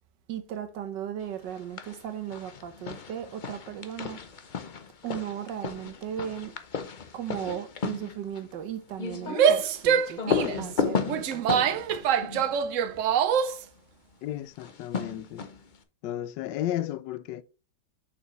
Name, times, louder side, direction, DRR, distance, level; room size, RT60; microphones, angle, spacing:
voice 1, 0.3-4.5 5.0-6.6 7.1-11.9, right 10 dB, 90° right, 1.6 m, -37 dB
sound 1, 1.5-2.0 2.3-13.3 14.5-15.8, left 6 dB, 50° left, 0.5 m, -34 dB
Female speech woman speaking / Yell, 9.3-13.6, right 8 dB, 70° right, 0.7 m, -25 dB
voice 2, 14.2-15.5 16.0-17.4, left 12 dB, 90° left, 1.3 m, -33 dB
6.8 x 5.7 x 3.1 m
omnidirectional pair, 1.9 m